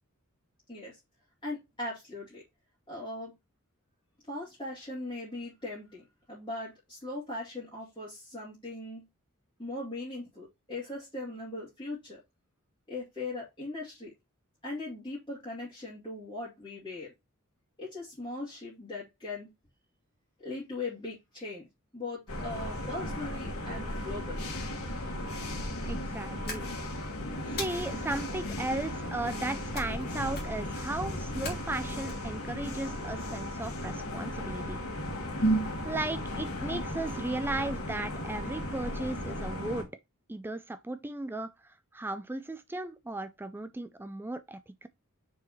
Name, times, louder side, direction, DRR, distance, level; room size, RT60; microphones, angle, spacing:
voice 1, 0.7-1.0 1.4-2.4 2.9-3.3 4.3-9.1 9.6-12.2 12.9-14.1 14.6-17.1 17.8-19.5 20.4-21.7 21.9-24.5, left 2 dB, 20° left, 2.6 m, -39 dB
sound 1, 22.3-39.8, equal, 70° left, 2.0 m, -35 dB
voice 2, 25.8-26.7 27.5-34.8 35.8-40.0 40.3-44.9, right 2 dB, 10° right, 0.3 m, -36 dB
sound 2, 26.5-27.1 27.6-28.2 29.7-30.1 30.3-30.7 31.4-32.1, left 3 dB, 45° left, 2.6 m, -40 dB
7.3 x 4.6 x 3.1 m
head